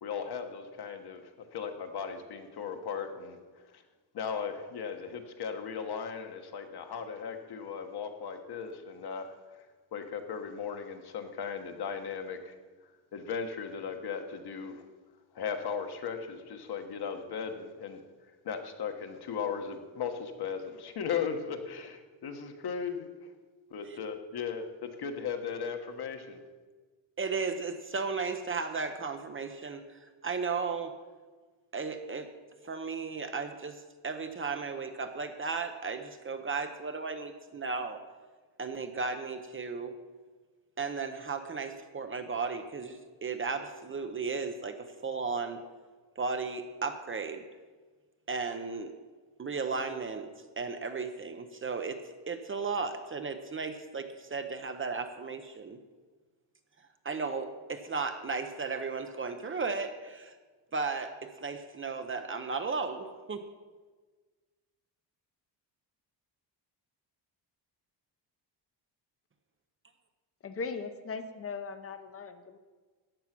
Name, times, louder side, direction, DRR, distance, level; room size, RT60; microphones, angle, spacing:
voice 1, 0.0-1.2 1.5-3.4 3.7-3.8 4.1-9.3 9.9-12.5 13.1-14.8 15.3-18.0 18.4-23.1 23.7-26.4, left 6 dB, 55° left, 5 dB, 1.4 m, -37 dB
voice 2, 27.2-30.9 31.7-32.3 32.6-38.0 38.6-39.9 40.8-45.6 46.2-47.5 48.3-48.9 49.4-52.0 52.3-55.8 57.0-60.3 60.7-63.5, right 4 dB, 25° right, 7 dB, 0.7 m, -35 dB
voice 3, 70.4-72.6, left 4 dB, 30° left, 9 dB, 0.8 m, -39 dB
14.5 x 9.6 x 6.0 m, 1.4 s
wide cardioid pair, 180°, 46 cm